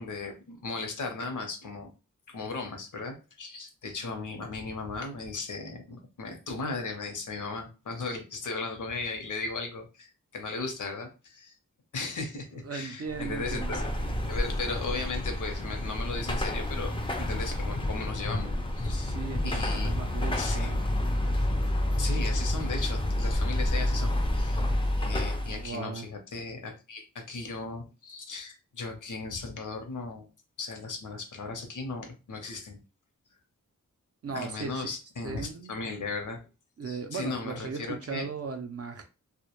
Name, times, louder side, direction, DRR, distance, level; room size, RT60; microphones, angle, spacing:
voice 1, 0.0-1.9 2.3-11.6 11.9-13.9 14.3-19.2 19.4-19.9 20.4-20.8 22.0-24.6 24.9-30.3 30.6-32.8 34.3-36.4 36.8-38.3, left 3 dB, 70° left, 0.6 m, -37 dB
voice 2, 12.6-13.8 18.9-20.8 25.4-26.1 34.2-34.9 35.2-35.7 36.8-39.0, right 5 dB, 50° right, 0.4 m, -37 dB
Car passing by / Traffic noise roadway noise / Engine, 13.1-25.7, left 1 dB, 15° left, 0.4 m, -29 dB
2.1 x 2.1 x 2.9 m
wide cardioid pair, 105°, 32 cm